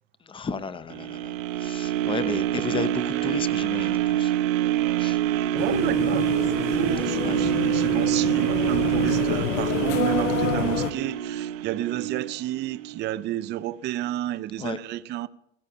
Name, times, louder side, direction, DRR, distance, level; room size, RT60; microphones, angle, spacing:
voice 1, 0.2-4.4 5.0-5.2 7.2-7.4 14.6-14.8, left 5 dB, 15° left, 0.6 m, -33 dB
sound 1, 0.9-13.0 13.5-13.6, right 12 dB, 90° right, 0.9 m, -26 dB
voice 2, 5.5-15.3, right 14 dB, 30° right, 0.4 m, -31 dB
sound 2, 5.6-10.9, left 10 dB, 75° left, 1.0 m, -28 dB
16.0 x 13.5 x 4.3 m
supercardioid pair, 125°, 38 cm